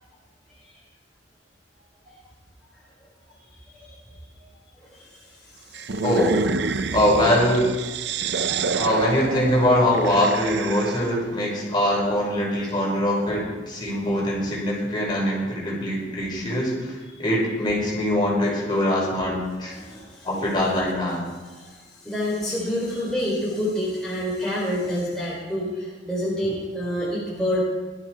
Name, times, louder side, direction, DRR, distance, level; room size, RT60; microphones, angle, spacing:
sound 1, 5.7-11.2, right 4 dB, 65° right, 0.6 m, -28 dB
voice 1, 6.0-6.4 6.9-7.7 8.7-19.7 20.2-21.3, left 1 dB, 25° left, -4 dB, 5.4 m, -23 dB
voice 2, 19.7-20.1 21.6-21.7 22.0-27.6, left 1 dB, 5° left, -7 dB, 4.0 m, -27 dB
18.5 x 12.5 x 4.8 m, 1.3 s
head